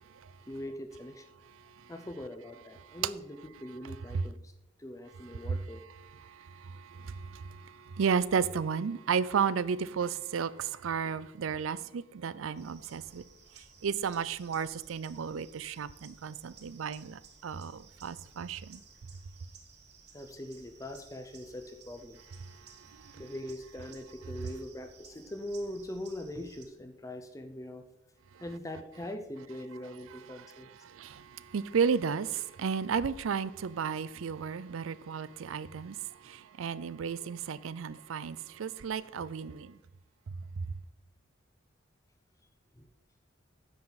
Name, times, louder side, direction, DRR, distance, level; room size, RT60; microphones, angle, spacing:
voice 1, 0.5-1.3 1.9-4.5 4.8-5.8 20.1-22.2 23.2-27.9 28.4-30.7 42.8-42.9, left 1 dB, 15° left, 0.6 m, -42 dB
voice 2, 1.6-1.9 2.8-3.0 4.1-4.3 5.4-5.6 6.2-13.2 13.8-18.8 22.6-23.2 28.3-28.4 30.4-30.5 30.8-39.8 40.6-40.7, right 6 dB, 90° right, 0.4 m, -33 dB
sound 1, 12.6-26.6, right 5 dB, 55° right, 1.3 m, -57 dB
10.0 x 7.6 x 4.0 m
head